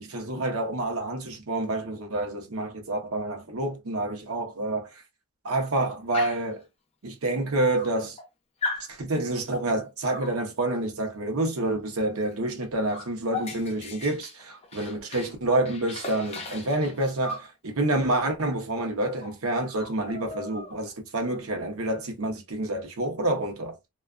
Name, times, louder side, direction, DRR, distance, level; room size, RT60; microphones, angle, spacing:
voice 1, 0.0-5.0 5.4-6.6 7.0-8.2 8.8-23.8, right 2 dB, 80° right, 0.7 m, -28 dB
Dog, 6.1-6.5 7.4-7.5 7.7-8.3 8.6-8.9 10.1-10.4 12.2-12.4 12.6-15.4 15.7-17.5 18.8-18.9 19.2-19.4 19.7-20.9, left 3 dB, 30° left, 0.5 m, -37 dB
2.3 x 2.2 x 2.4 m
head